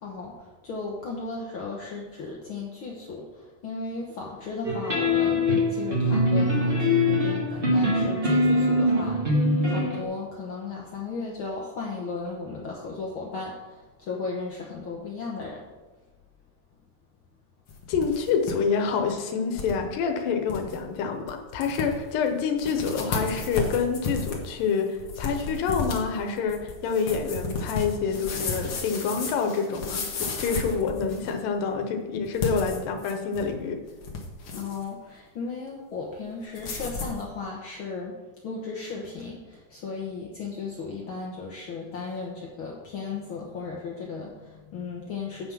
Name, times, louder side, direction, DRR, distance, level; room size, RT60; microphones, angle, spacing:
voice 1, 0.0-15.6 34.6-38.2 38.4-45.5, left 4 dB, 70° left, -2 dB, 1.2 m, -36 dB
sound 1, 4.6-10.0, left 1 dB, 30° right, 1.1 m, -23 dB
sound 2, 17.7-18.5 18.9-19.0 19.5-19.8 20.2-20.3 20.5-20.8 21.3-21.4 21.6-22.1 22.6-31.4 32.3-33.5 33.9-34.8 36.5-37.2, left 3 dB, 55° left, 1.7 m, -33 dB
voice 2, 17.9-33.8, left 5 dB, 90° left, 4 dB, 2.6 m, -27 dB
8.5 x 5.8 x 6.1 m, 1.2 s
omnidirectional pair, 3.8 m